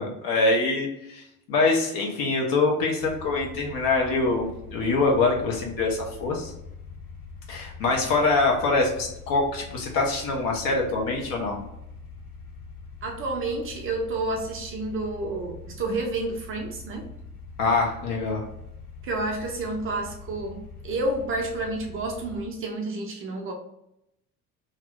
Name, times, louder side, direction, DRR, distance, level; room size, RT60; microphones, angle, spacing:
voice 1, 0.0-6.5 7.5-11.6 17.6-18.4, left 3 dB, 50° left, 0 dB, 1.0 m, -24 dB
sound 1, 3.0-22.5, left 4 dB, 85° left, 0.7 m, -43 dB
voice 2, 13.0-17.1 19.0-23.5, right 2 dB, 30° right, 1 dB, 0.6 m, -30 dB
2.9 x 2.6 x 3.1 m, 0.81 s
figure-of-eight pair, 60°, 44 cm